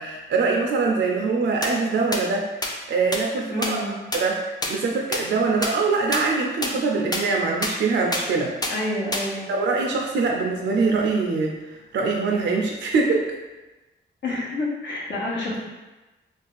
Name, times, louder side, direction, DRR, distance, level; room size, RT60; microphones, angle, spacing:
voice 1, 0.0-3.8 4.1-8.7 9.5-11.6 11.9-13.3, right 4 dB, 65° right, 0 dB, 0.4 m, -23 dB
sound 1, 1.6-1.7 2.1-2.2 2.6-2.7 3.1-3.2 3.6-3.7 4.1-4.2 4.6-4.7 5.1-5.2 5.6-5.7 6.1-6.2 6.6-6.7 7.1-7.2 7.6-7.7 8.1-8.2 8.6-8.7 9.1-9.2, left 2 dB, 20° left, 0.5 m, -25 dB
voice 2, 3.5-3.9 8.7-9.5 14.2-15.6, left 2 dB, 65° left, -5 dB, 1.0 m, -28 dB
2.6 x 2.3 x 3.9 m, 1.1 s
cardioid pair, 80°, 20 cm